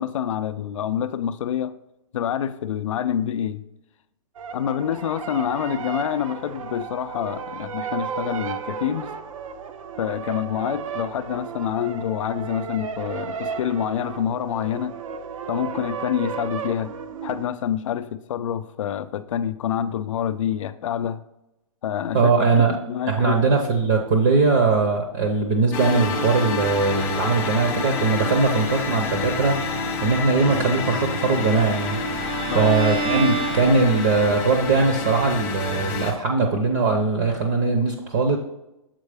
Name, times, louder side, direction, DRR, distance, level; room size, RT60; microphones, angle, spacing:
voice 1, 0.0-1.7 2.1-3.6 4.5-9.1 10.0-14.9 15.5-16.9 17.2-21.2 21.8-23.4 32.5-32.8, left 9 dB, 65° left, 0.4 m, -27 dB
sound 1, 4.4-17.5, right 6 dB, 70° right, 0.7 m, -34 dB
voice 2, 22.1-22.8 23.1-29.6 30.0-32.0 32.5-38.4, right 4 dB, 30° right, 0.6 m, -20 dB
sound 2, 25.7-36.1, left 3 dB, 10° left, 0.5 m, -28 dB
Bowed string instrument, 31.2-34.3, right 3 dB, 85° right, 1.1 m, -30 dB
7.4 x 4.4 x 3.4 m
hypercardioid pair, 175°, 18 cm